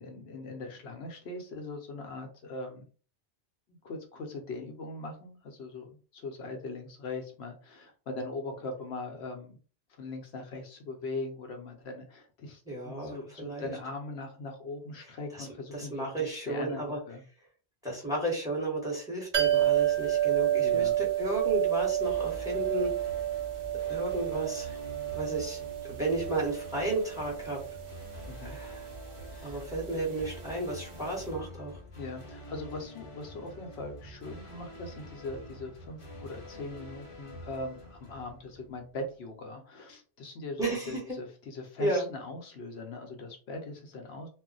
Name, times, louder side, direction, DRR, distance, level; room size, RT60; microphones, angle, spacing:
voice 1, 0.0-2.8 3.8-9.6 9.9-17.2 20.6-21.0 28.3-28.6 29.3-29.7 31.9-44.3, left 2 dB, 70° left, 3 dB, 0.8 m, -41 dB
voice 2, 12.7-13.7 15.3-15.5 15.7-17.0 17.8-22.9 23.9-24.8 25.1-25.6 25.8-27.6 28.4-28.8 29.4-31.8 40.6-41.2 41.8-42.1, right 2 dB, 5° right, -2 dB, 0.9 m, -33 dB
sound 1, 19.3-31.0 31.2-31.3, right 12 dB, 70° right, 1.0 m, -31 dB
sound 2, 22.0-39.0, equal, 35° left, 0.6 m, -47 dB
2.3 x 2.1 x 3.8 m, 0.39 s
omnidirectional pair, 1.2 m